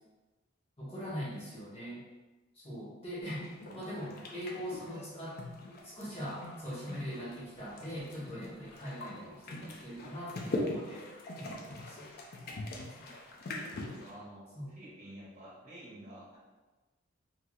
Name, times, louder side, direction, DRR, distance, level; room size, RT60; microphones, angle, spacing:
voice 1, 0.8-2.0 2.6-3.4 3.7-5.3 5.8-11.0 11.4-12.1 13.0-13.1 14.5-14.7, equal, 30° left, -9 dB, 1.1 m, -41 dB
sound 1, 3.2-14.1, left 2 dB, 50° left, 0.5 m, -42 dB
voice 2, 3.7-4.3 4.9-5.1 13.8-14.4 14.7-16.4, right 1 dB, 40° right, -7 dB, 1.1 m, -50 dB
3.0 x 2.8 x 2.3 m, 1.2 s
head